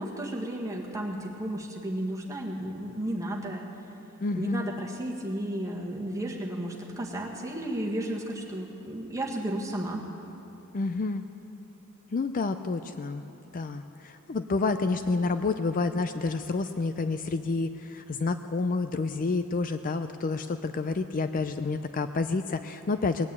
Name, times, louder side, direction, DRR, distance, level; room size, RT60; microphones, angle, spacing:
voice 1, 0.0-3.7 4.3-10.0, right 1 dB, 15° right, -2 dB, 1.7 m, -33 dB
voice 2, 4.2-4.7 10.7-11.2 12.1-13.2 13.5-23.3, left 3 dB, 40° left, 9 dB, 0.4 m, -29 dB
19.5 x 8.9 x 8.4 m, 2.9 s
head